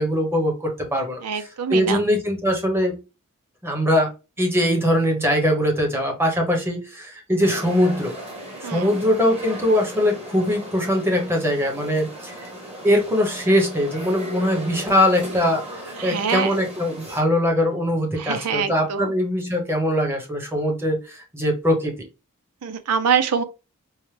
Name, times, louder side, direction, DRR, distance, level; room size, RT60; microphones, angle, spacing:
voice 1, 0.0-3.0 3.6-4.1 4.4-8.1 8.6-12.5 12.8-21.9, equal, 10° right, 1.0 m, -22 dB
voice 2, 1.2-2.0 8.6-8.9 16.0-16.5 18.2-19.1 22.6-23.4, right 6 dB, 85° right, 0.5 m, -24 dB
sound 1, 7.4-17.2, equal, 30° right, 1.3 m, -36 dB
4.6 x 2.1 x 3.3 m
head